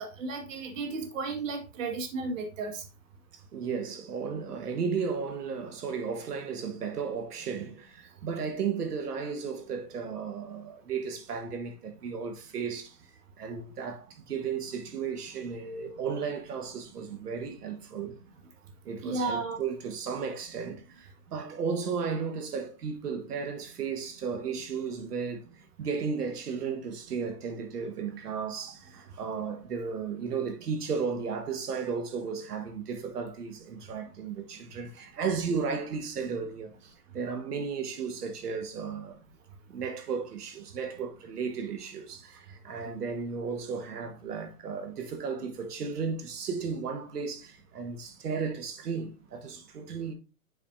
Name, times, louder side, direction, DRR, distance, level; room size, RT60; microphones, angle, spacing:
voice 1, 0.0-2.8 19.0-19.6, right 3 dB, 55° right, 1.8 m, -33 dB
voice 2, 3.5-13.0 13.4-18.2 18.8-25.5 25.8-39.2 39.7-50.1, right 5 dB, 90° right, 1.5 m, -34 dB
8.2 x 5.2 x 2.6 m
hypercardioid pair, 160°, 45 cm